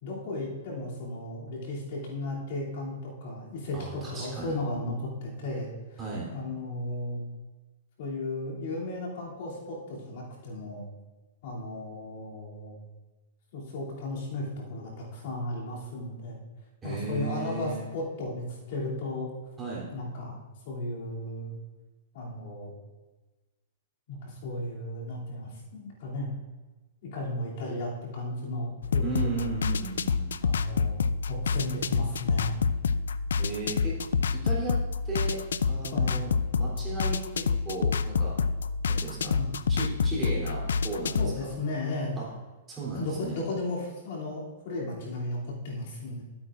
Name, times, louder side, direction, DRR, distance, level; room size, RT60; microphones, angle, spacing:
voice 1, 0.0-6.0 6.3-7.2 8.0-10.9 11.4-12.8 13.5-16.4 16.8-19.3 19.9-21.6 22.1-22.7 24.1-26.4 27.1-29.6 30.4-32.6 35.9-36.1 39.2-39.5 41.2-42.1 42.9-46.2, left 1 dB, 60° left, -5 dB, 2.9 m, -35 dB
voice 2, 3.7-4.6 6.0-6.3 16.8-17.8 19.6-19.8 29.0-30.3 33.4-34.0 34.3-34.8 35.0-35.4 35.7-36.3 36.5-38.3 38.9-39.3 39.7-41.6 42.2-42.3 42.7-43.4, right 3 dB, 15° right, -6 dB, 3.4 m, -35 dB
sound 1, 28.8-41.4, left 5 dB, 90° left, 0.3 m, -28 dB
12.5 x 8.7 x 2.6 m, 1.2 s
hypercardioid pair, 140°, 0 cm